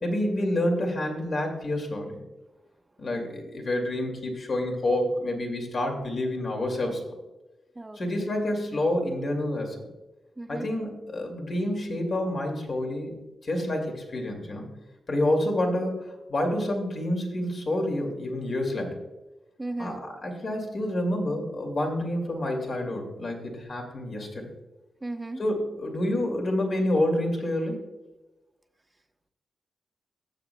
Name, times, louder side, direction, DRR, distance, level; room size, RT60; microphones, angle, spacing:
voice 1, 0.0-2.2 3.0-7.2 7.9-9.8 10.5-13.1 13.4-14.7 15.1-19.0 19.8-24.5 25.4-27.8, left 1 dB, 55° left, 2 dB, 2.3 m, -28 dB
voice 2, 7.8-8.3 10.4-10.7 19.6-20.0 25.0-25.4, right 2 dB, 20° right, 8 dB, 0.8 m, -36 dB
14.0 x 7.9 x 2.3 m, 1.1 s
cardioid pair, 55°, 0 cm